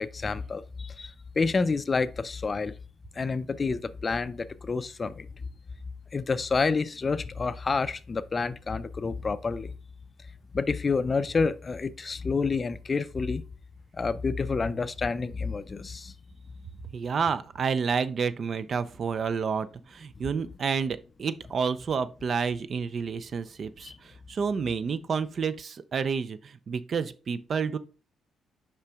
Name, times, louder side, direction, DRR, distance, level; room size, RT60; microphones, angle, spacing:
voice 1, 0.0-2.7 3.2-5.3 6.1-9.7 10.5-13.4 14.0-16.1 23.8-23.9, left 4 dB, 35° left, 0.4 m, -29 dB
voice 2, 16.9-27.8, right 6 dB, 50° right, 0.4 m, -30 dB
5.5 x 5.0 x 3.5 m
cardioid pair, 90°, 0 cm